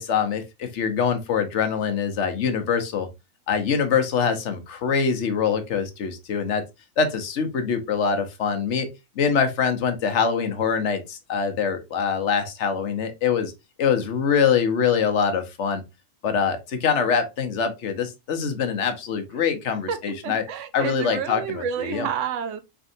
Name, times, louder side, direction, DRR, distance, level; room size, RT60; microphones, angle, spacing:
voice 1, 0.0-3.1 3.5-6.6 7.0-8.9 9.2-13.5 13.8-15.8 16.2-20.4 20.7-22.1, left 6 dB, 60° left, 1.0 m, -24 dB
voice 2, 19.9-22.6, right 8 dB, 65° right, 0.9 m, -30 dB
4.3 x 3.5 x 2.6 m
omnidirectional pair, 1.6 m